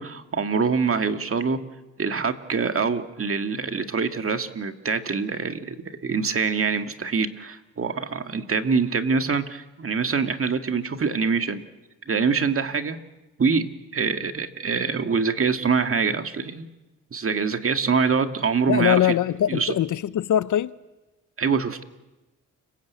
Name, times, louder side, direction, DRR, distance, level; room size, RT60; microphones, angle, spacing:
voice 1, 0.0-1.6 2.0-11.6 12.1-13.0 13.4-13.7 13.9-16.7 17.1-19.1 19.5-19.7 21.4-21.8, right 5 dB, 45° right, 2.1 m, -24 dB
voice 2, 18.7-20.7, left 11 dB, 70° left, 0.8 m, -22 dB
29.5 x 20.5 x 8.4 m
cardioid pair, 70°, 32 cm